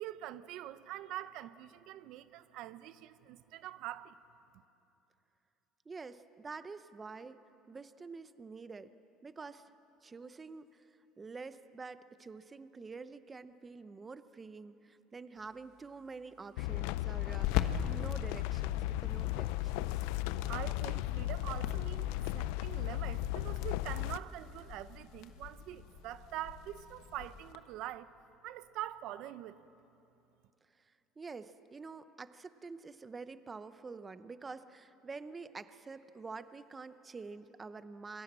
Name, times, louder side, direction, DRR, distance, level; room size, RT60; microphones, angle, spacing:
voice 1, 0.0-4.1 20.4-28.1 28.4-29.7, right 13 dB, 65° right, 0.7 m, -44 dB
voice 2, 5.9-7.4 7.7-8.9 9.2-9.7 10.0-10.9 11.2-20.0 30.8-38.2, right 4 dB, 20° right, 0.7 m, -47 dB
sound 1, 15.4-27.6, left 9 dB, 70° left, 1.3 m, -43 dB
sound 2, 16.6-24.2, left 15 dB, 90° left, 0.5 m, -35 dB
26.5 x 23.0 x 7.5 m
cardioid pair, 135°, 0 cm